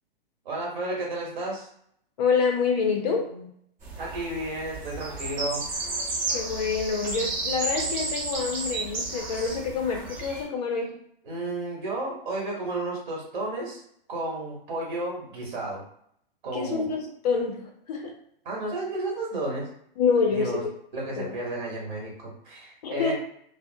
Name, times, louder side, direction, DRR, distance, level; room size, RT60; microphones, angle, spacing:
voice 1, 0.4-1.7 4.0-5.6 11.2-13.8 14.1-15.8 16.4-16.9 18.4-19.7 20.3-20.6 20.9-23.1, right 2 dB, 55° right, -2 dB, 1.3 m, -32 dB
voice 2, 2.2-3.5 6.3-11.0 16.5-18.1 20.0-20.7 21.2-21.3 22.8-23.1, left 5 dB, 45° left, 2 dB, 0.5 m, -27 dB
sound 1, 3.8-10.4, right 3 dB, 25° right, 0.8 m, -32 dB
2.4 x 2.0 x 2.6 m, 0.68 s
figure-of-eight pair, 120°, 29 cm